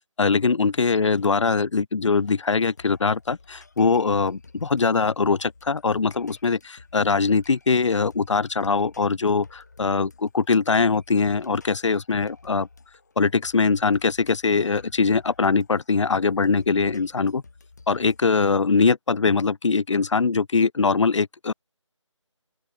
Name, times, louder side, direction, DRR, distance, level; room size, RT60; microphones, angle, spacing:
voice 1, 0.2-12.7 13.2-17.4 17.9-21.5, left 4 dB, 65° left, 0.5 m, -22 dB
sound 1, 2.1-18.6, left 3 dB, 35° left, 4.7 m, -53 dB
open air
figure-of-eight pair, 180°, 17 cm